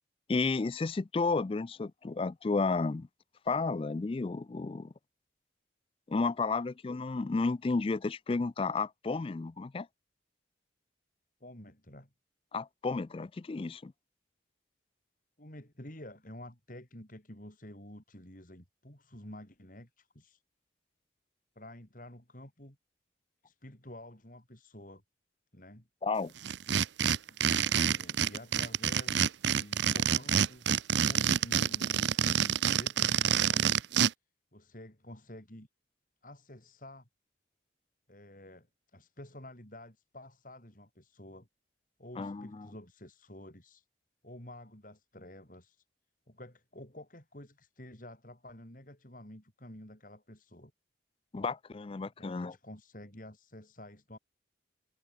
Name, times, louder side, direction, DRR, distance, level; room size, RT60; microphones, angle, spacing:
voice 1, 0.3-3.1 3.5-4.9 6.1-9.9 12.5-13.9 26.0-26.3 42.2-42.7 51.3-52.5, left 3 dB, 30° left, 0.4 m, -32 dB
voice 2, 11.4-12.1 15.4-20.4 21.6-22.8 23.4-25.0 25.5-25.9 27.3-27.4 27.9-33.9 34.5-35.7 36.2-37.1 38.1-41.5 42.0-43.9 44.2-45.8 46.3-50.7 51.9-54.2, left 1 dB, 45° left, 5.2 m, -50 dB
sound 1, 26.4-34.1, right 8 dB, 70° right, 0.7 m, -27 dB
head